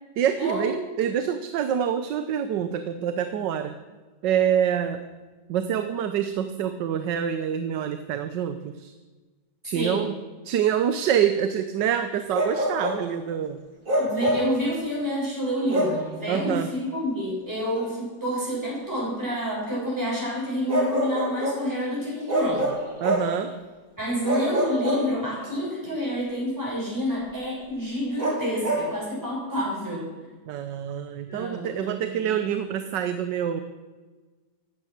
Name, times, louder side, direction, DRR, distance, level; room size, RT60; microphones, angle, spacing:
voice 1, 0.2-3.7 4.2-5.0 5.5-8.9 9.6-10.2 10.4-13.6 16.3-16.7 23.0-23.5 30.5-33.6, right 9 dB, 85° right, 9 dB, 1.5 m, -26 dB
voice 2, 9.7-10.1 14.0-22.7 24.0-30.1 31.3-32.3, equal, 10° right, -6 dB, 6.7 m, -28 dB
Bark, 12.3-13.1 13.9-14.6 15.7-16.1 17.7-17.9 20.7-21.7 22.3-23.4 24.2-25.5 28.2-28.9, right 1 dB, 50° right, 3.5 m, -26 dB
15.0 x 12.5 x 6.5 m, 1.3 s
omnidirectional pair, 1.9 m